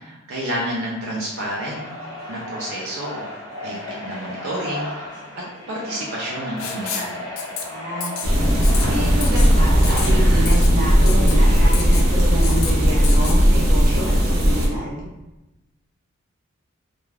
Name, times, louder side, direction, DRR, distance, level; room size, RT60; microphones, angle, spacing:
voice 1, 0.0-1.8 2.3-3.3 3.6-7.2, equal, 70° right, -4 dB, 0.4 m, -30 dB
sound 1, 1.0-12.1, left 1 dB, 20° left, 0.6 m, -36 dB
Writing, 6.6-7.1 7.4-7.6 8.0-8.3 8.6-8.8 9.2-9.5 9.8-10.1 10.4-10.7 11.1-11.3 11.7-12.1 12.4-12.7 13.0-13.4, left 7 dB, 75° left, 0.4 m, -30 dB
voice 2, 7.6-8.1 8.8-15.1, equal, 40° right, -5 dB, 0.8 m, -28 dB
sound 2, 8.2-14.7, equal, 90° right, 0.8 m, -16 dB
2.3 x 2.2 x 3.2 m, 1.0 s
head